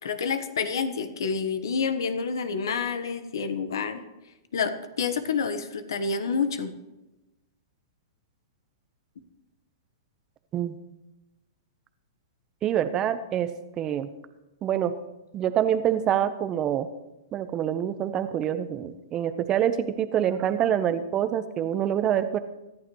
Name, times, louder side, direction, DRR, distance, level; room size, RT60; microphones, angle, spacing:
voice 1, 0.0-4.0 4.5-6.7, left 5 dB, 75° left, 10 dB, 1.3 m, -28 dB
voice 2, 12.6-13.5 13.8-14.1 14.6-14.9 15.3-16.9 17.3-22.4, right 10 dB, 30° right, 11 dB, 0.9 m, -26 dB
24.0 x 11.0 x 3.2 m, 1.0 s
hypercardioid pair, 125°, 2 cm